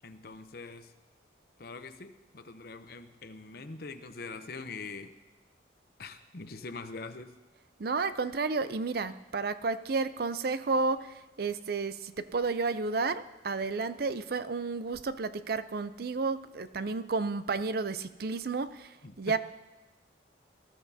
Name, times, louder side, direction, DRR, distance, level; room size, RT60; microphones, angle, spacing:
voice 1, 0.0-0.9 1.6-5.1 6.0-7.3 19.0-19.4, left 3 dB, 55° left, 9 dB, 0.8 m, -43 dB
voice 2, 7.8-19.4, right 4 dB, 55° right, 13 dB, 0.5 m, -32 dB
19.5 x 13.5 x 2.8 m, 1.1 s
head